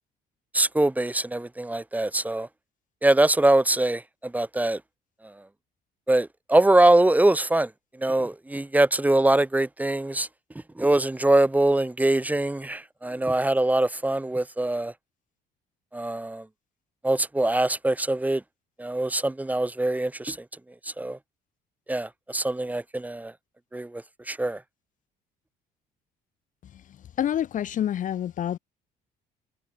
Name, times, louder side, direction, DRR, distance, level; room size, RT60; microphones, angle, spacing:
voice 1, 0.5-2.5 3.0-4.8 5.2-5.3 6.1-7.7 8.0-10.3 10.7-14.9 15.9-16.5 17.0-18.4 18.8-20.4 20.8-21.2 21.9-23.3 23.7-24.6, right 2 dB, 10° right, 1.7 m, -23 dB
voice 2, 27.2-28.6, left 10 dB, 50° left, 0.9 m, -27 dB
cardioid pair, 110°, 17 cm